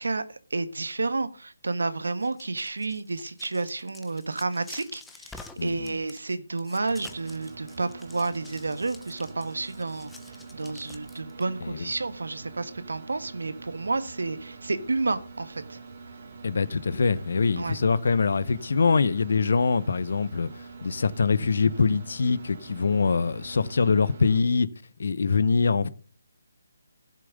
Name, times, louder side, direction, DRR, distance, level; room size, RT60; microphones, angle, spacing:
voice 1, 0.0-15.8 17.6-17.8, right 3 dB, 80° right, 1.5 m, -31 dB
sound 1, 2.1-11.4, left 3 dB, 5° left, 0.8 m, -49 dB
voice 2, 5.6-5.9 11.6-11.8 16.4-20.5 20.8-24.7 25.0-25.9, left 4 dB, 60° left, 0.9 m, -24 dB
sound 2, 6.9-24.4, right 4 dB, 45° right, 2.5 m, -45 dB
13.0 x 7.6 x 5.3 m
figure-of-eight pair, 160°, 0 cm